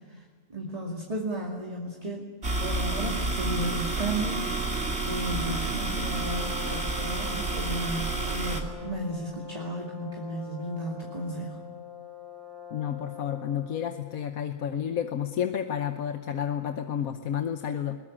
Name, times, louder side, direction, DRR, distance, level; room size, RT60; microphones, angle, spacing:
voice 1, 0.5-2.3 2.6-4.4 5.0-11.6, right 1 dB, 25° right, -1 dB, 2.5 m, -34 dB
sound 1, 2.4-8.6, right 3 dB, 45° right, 3.1 m, -30 dB
Brass instrument, 6.1-13.9, left 8 dB, 15° left, 3.6 m, -44 dB
voice 2, 12.7-18.0, left 9 dB, 70° left, 7 dB, 1.4 m, -31 dB
21.5 x 21.0 x 8.7 m, 1.5 s
omnidirectional pair, 1.6 m